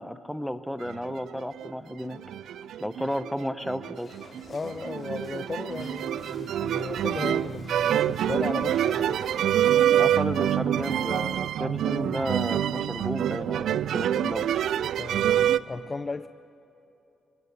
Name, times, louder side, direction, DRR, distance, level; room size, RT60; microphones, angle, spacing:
voice 1, 0.0-2.2 2.8-4.1 9.9-14.5, equal, 5° left, 0.8 m, -33 dB
sound 1, 0.9-1.7 2.0-15.6, right 10 dB, 70° right, 0.4 m, -26 dB
sound 2, 3.9-10.6, left 3 dB, 45° left, 2.9 m, -53 dB
voice 2, 4.5-9.2 15.0-16.3, left 3 dB, 30° left, 0.4 m, -35 dB
25.0 x 18.5 x 6.9 m
cardioid pair, 90°, 0 cm